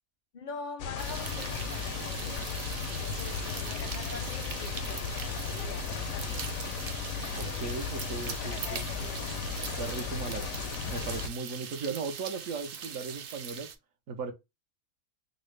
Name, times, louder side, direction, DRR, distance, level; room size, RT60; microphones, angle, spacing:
voice 1, 0.3-2.4 2.9-6.9 8.4-9.4, left 4 dB, 55° left, 0.5 m, -44 dB
sound 1, 0.8-11.3, left 6 dB, 85° left, 1.0 m, -35 dB
sound 2, 1.0-13.8, right 7 dB, 60° right, 0.6 m, -41 dB
voice 2, 7.4-8.8 9.8-10.5 10.9-13.7 14.1-14.3, right 4 dB, 75° right, 1.2 m, -37 dB
4.0 x 2.0 x 3.1 m
omnidirectional pair, 1.4 m